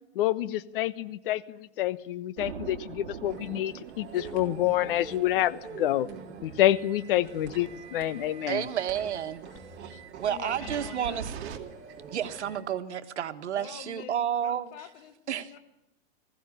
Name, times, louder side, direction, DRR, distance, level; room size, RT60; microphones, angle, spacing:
voice 1, 0.1-6.1 6.4-8.7, left 13 dB, 55° left, 1.2 m, -28 dB
sound 1, 2.4-7.8 8.5-8.6 10.5-11.6, right 8 dB, 65° right, 2.5 m, -43 dB
sound 2, 3.2-12.6, right 6 dB, 30° right, 3.9 m, -45 dB
voice 2, 8.5-9.4 9.8-9.9 10.2-11.3 12.1-14.9 15.3-15.5, right 9 dB, 85° right, 1.7 m, -31 dB
voice 3, 10.3-11.3 13.5-14.1 14.4-15.6, left 12 dB, 35° left, 1.5 m, -45 dB
20.0 x 16.0 x 9.9 m
hypercardioid pair, 150°, 33 cm